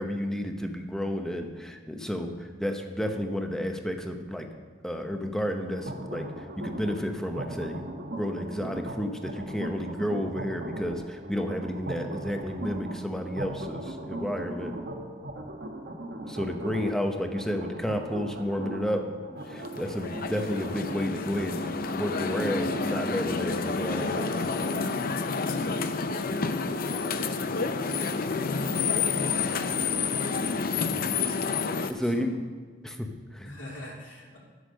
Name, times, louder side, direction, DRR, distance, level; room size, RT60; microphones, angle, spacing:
voice 1, 0.0-2.3 2.6-4.5 4.8-6.3 6.6-7.8 8.1-14.7 16.3-19.0 19.3-24.3 31.9-32.3 32.8-33.5, equal, 5° left, 4 dB, 0.8 m, -31 dB
sound 1, 5.7-24.9, right 1 dB, 60° right, 1.1 m, -39 dB
sound 2, 19.4-31.9, left 4 dB, 50° left, 0.6 m, -29 dB
voice 2, 33.4-34.4, left 1 dB, 75° left, -3 dB, 3.0 m, -44 dB
10.0 x 8.1 x 6.4 m, 1.5 s
head